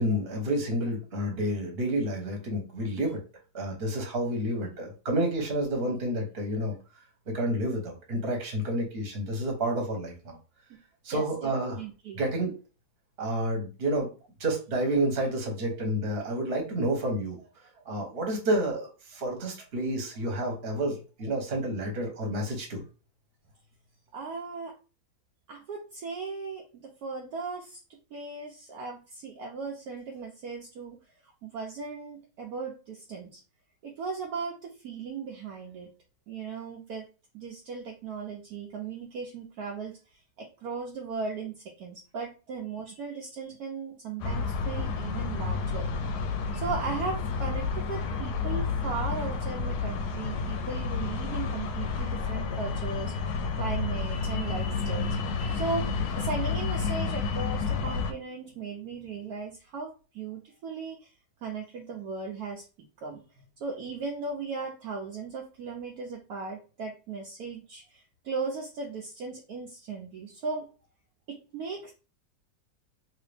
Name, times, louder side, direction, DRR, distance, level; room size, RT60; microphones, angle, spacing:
voice 1, 0.0-3.2 3.5-6.7 7.3-10.4 11.0-11.8 12.1-12.5 13.2-14.1 14.4-17.4 17.8-22.8, right 1 dB, 40° right, 1 dB, 1.2 m, -29 dB
voice 2, 11.1-12.2 24.1-24.7 25.5-31.0 31.4-33.4 33.8-35.9 36.3-37.1 37.3-40.0 40.4-45.9 46.5-55.9 56.2-61.1 61.4-62.6 63.0-63.2 63.6-70.7 71.3-71.9, right 4 dB, 65° right, 0 dB, 1.0 m, -37 dB
sound 1, 44.2-58.1, left 4 dB, 70° left, 1.1 m, -30 dB
3.0 x 2.8 x 3.3 m, 0.34 s
omnidirectional pair, 1.9 m